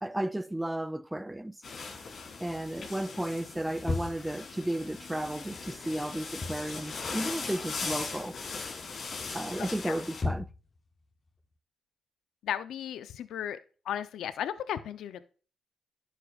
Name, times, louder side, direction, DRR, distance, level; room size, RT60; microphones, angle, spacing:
voice 1, 0.0-1.6 2.4-8.4 9.3-10.5, right 1 dB, 10° right, 0.5 m, -33 dB
sound 1, 1.6-10.2, left 4 dB, 55° left, 3.8 m, -39 dB
sound 2, 3.8-4.4 6.2-6.7 7.0-7.9 8.2-8.6 9.3-10.8, left 3 dB, 35° left, 0.9 m, -35 dB
voice 2, 9.6-10.0 12.4-13.6 13.9-15.3, left 10 dB, 75° left, 0.7 m, -35 dB
11.0 x 8.3 x 2.5 m
supercardioid pair, 65°, 0 cm